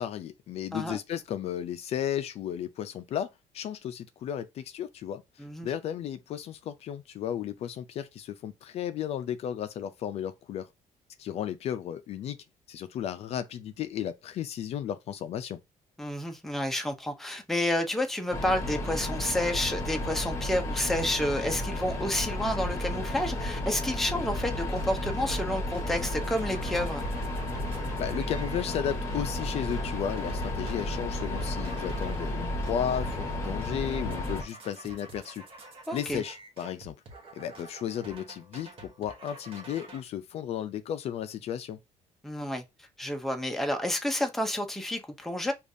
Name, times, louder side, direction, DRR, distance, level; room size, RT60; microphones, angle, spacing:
voice 1, 0.0-10.7 11.2-12.4 12.7-15.6 28.0-35.4 35.9-37.0 37.3-41.8, left 9 dB, 55° left, 0.4 m, -34 dB
voice 2, 16.0-27.0 35.9-36.2 42.2-42.6 43.0-45.5, left 1 dB, ahead, 0.5 m, -30 dB
sound 1, 18.3-34.4, left 1 dB, 25° left, 1.0 m, -33 dB
sound 2, 24.3-24.5 24.8-25.5 25.7-32.4 32.6-33.4 33.6-40.0, right 2 dB, 45° right, 0.9 m, -48 dB
5.0 x 2.4 x 2.6 m
cardioid pair, 150°, 13 cm